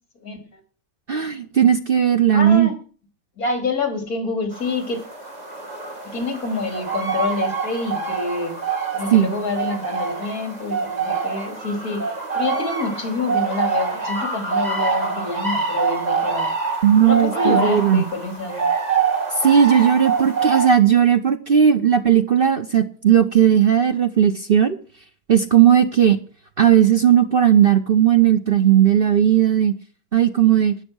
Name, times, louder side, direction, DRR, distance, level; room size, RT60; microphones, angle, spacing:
voice 1, 0.2-0.6 2.3-2.7 3.4-5.0 6.0-8.5 8.9-12.0 12.3-16.5 17.0-18.7, left 3 dB, 65° left, 5 dB, 4.2 m, -27 dB
voice 2, 1.1-2.7 9.1-9.3 16.8-18.0 19.4-24.8 25.3-26.2 26.6-29.7 30.1-30.7, right 9 dB, 45° right, 8 dB, 0.9 m, -16 dB
sound 1, 4.5-20.7, right 5 dB, 25° right, 2.9 m, -25 dB
12.5 x 10.5 x 6.3 m, 0.40 s
omnidirectional pair, 1.7 m